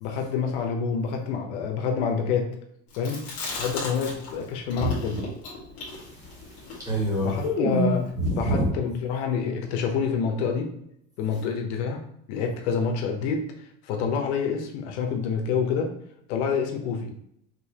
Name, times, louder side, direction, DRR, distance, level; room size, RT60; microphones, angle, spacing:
voice 1, 0.0-2.5 3.0-3.2 3.5-5.2 7.2-10.7 11.2-12.0 12.3-13.5 13.8-15.9 16.3-17.1, left 6 dB, 90° left, 3 dB, 0.9 m, -27 dB
Chewing mastication, 2.9-4.4 4.7-8.1, left 1 dB, 45° left, 1.6 m, -30 dB
voice 2, 5.9-7.3 8.2-8.7, right 1 dB, 10° right, -6 dB, 1.7 m, -28 dB
5.3 x 2.8 x 2.9 m, 0.74 s
cardioid pair, 175°, 33 cm